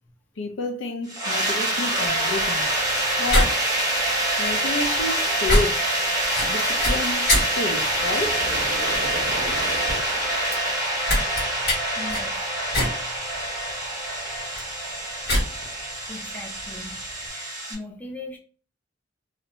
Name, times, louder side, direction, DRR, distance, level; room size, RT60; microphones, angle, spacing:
voice 1, 0.4-2.7 3.2-5.9 6.4-8.4, left 2 dB, 80° left, 0.4 m, -30 dB
sound 1, 1.1-17.7, right 1 dB, 20° right, 0.7 m, -26 dB
sound 2, 2.0-17.3, left 1 dB, 60° left, 1.4 m, -28 dB
sound 3, 7.4-11.4, right 3 dB, 80° right, 0.6 m, -35 dB
voice 2, 12.0-12.4 16.1-17.0 17.3-18.4, left 2 dB, 10° left, 0.4 m, -39 dB
2.6 x 2.1 x 2.8 m
head